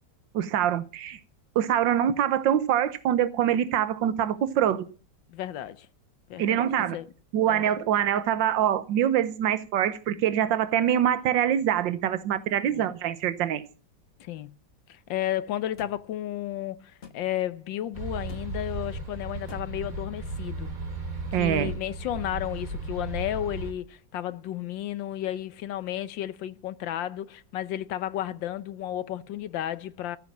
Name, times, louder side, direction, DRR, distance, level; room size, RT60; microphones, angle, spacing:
voice 1, 0.3-1.2 1.5-4.9 6.4-7.0 7.3-13.6 21.3-21.7, right 10 dB, 80° right, 1.7 m, -24 dB
voice 2, 5.3-5.9 6.3-7.1 7.5-7.7 12.7-12.9 14.2-14.5 14.9-20.7 21.3-30.2, left 12 dB, 90° left, 1.5 m, -33 dB
sound 1, 15.8-16.0 17.0-17.2 18.3-18.5 19.5-19.6, left 5 dB, 35° left, 1.4 m, -45 dB
sound 2, 17.9-23.7, right 2 dB, 45° right, 4.2 m, -35 dB
14.5 x 8.5 x 7.3 m
omnidirectional pair, 2.0 m